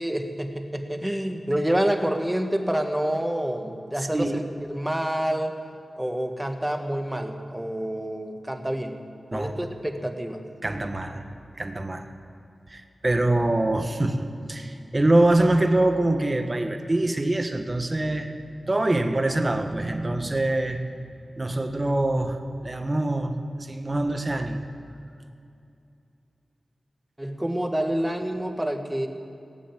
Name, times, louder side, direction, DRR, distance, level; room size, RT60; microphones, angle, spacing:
voice 1, 0.0-5.6 6.0-9.0 9.3-10.4 27.2-29.1, right 1 dB, 10° right, 5 dB, 1.6 m, -28 dB
voice 2, 4.0-4.4 9.3-9.6 10.6-11.3 11.5-12.0 12.7-18.3 18.7-20.8 21.4-24.6, right 1 dB, 35° right, 6 dB, 1.4 m, -24 dB
18.0 x 7.3 x 9.1 m, 2.6 s
cardioid pair, 55°, 0 cm